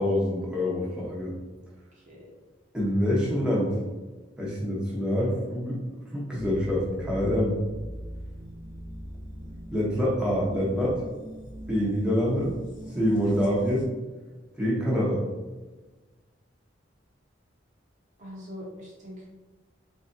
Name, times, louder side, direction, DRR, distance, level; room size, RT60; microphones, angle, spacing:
voice 1, 0.0-1.3 2.7-3.8 4.4-5.8 6.1-7.6 9.7-11.0 11.7-12.5 12.9-13.9 14.6-15.3, equal, 5° right, -6 dB, 0.8 m, -26 dB
voice 2, 1.9-2.3 18.2-19.3, equal, 40° right, -4 dB, 0.9 m, -42 dB
sound 1, 6.3-13.8, equal, 40° left, 0.9 m, -41 dB
3.1 x 2.6 x 3.7 m, 1.2 s
head